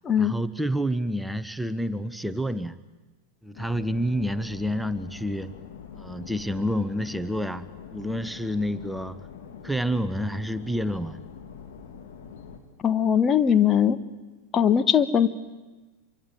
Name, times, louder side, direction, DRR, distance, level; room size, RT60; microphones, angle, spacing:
voice 1, 0.2-2.7 3.4-5.5 6.0-9.2 9.6-11.2, equal, ahead, 13 dB, 0.9 m, -29 dB
sound 1, 3.5-12.6, left 7 dB, 55° left, 3.1 m, -44 dB
voice 2, 12.8-14.0 14.5-15.3, left 8 dB, 25° left, 11 dB, 1.3 m, -20 dB
26.5 x 23.5 x 9.1 m, 1.2 s
figure-of-eight pair, 90°, 0 cm